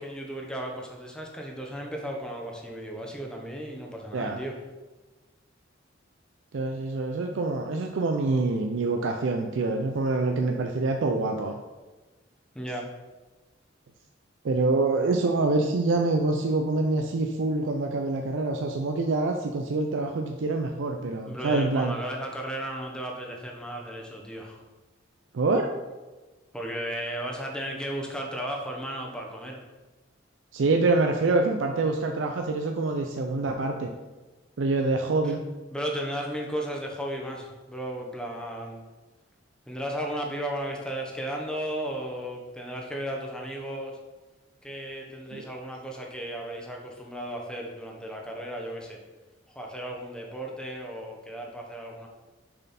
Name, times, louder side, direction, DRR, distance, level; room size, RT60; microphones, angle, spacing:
voice 1, 0.0-4.6 12.5-12.9 21.3-24.6 26.5-29.6 35.2-35.4 35.7-38.8 39.7-44.0 44.6-49.0 49.5-52.1, right 1 dB, 5° left, 0 dB, 0.8 m, -35 dB
voice 2, 6.5-11.6 14.4-22.0 25.3-25.7 30.5-33.9 34.6-35.4 45.3-45.4, right 3 dB, 75° right, 3 dB, 0.4 m, -26 dB
6.6 x 4.2 x 4.2 m, 1.2 s
head